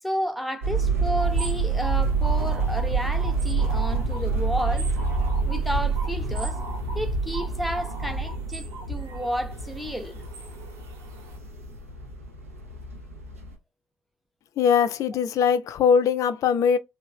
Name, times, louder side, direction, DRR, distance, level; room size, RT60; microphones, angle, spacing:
voice 1, 0.0-4.9 5.5-6.6 6.9-10.2, equal, ahead, 0.5 m, -31 dB
sound 1, 0.6-13.5, right 4 dB, 90° right, 0.5 m, -27 dB
sound 2, 1.1-11.4, right 3 dB, 65° right, 0.9 m, -42 dB
voice 2, 14.6-16.8, left 7 dB, 50° left, 0.4 m, -21 dB
3.0 x 2.7 x 2.3 m
figure-of-eight pair, 50°, 7 cm